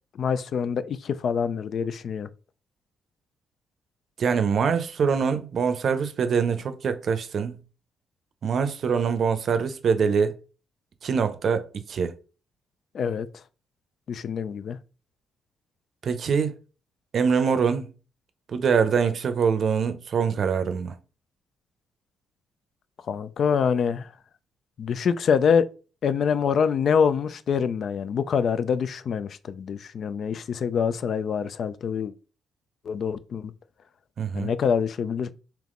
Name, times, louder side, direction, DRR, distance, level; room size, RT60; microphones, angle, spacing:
voice 1, 0.2-2.3 12.9-13.3 14.1-14.8 23.1-24.1 24.8-25.7 26.0-32.1 32.9-33.5 34.3-35.3, left 6 dB, 60° left, 0.4 m, -25 dB
voice 2, 4.2-7.6 8.4-10.3 11.0-12.1 16.0-16.5 17.1-17.9 18.5-21.0 34.2-34.5, right 6 dB, 55° right, 0.6 m, -24 dB
3.6 x 2.9 x 3.7 m
cardioid pair, 90°, 0 cm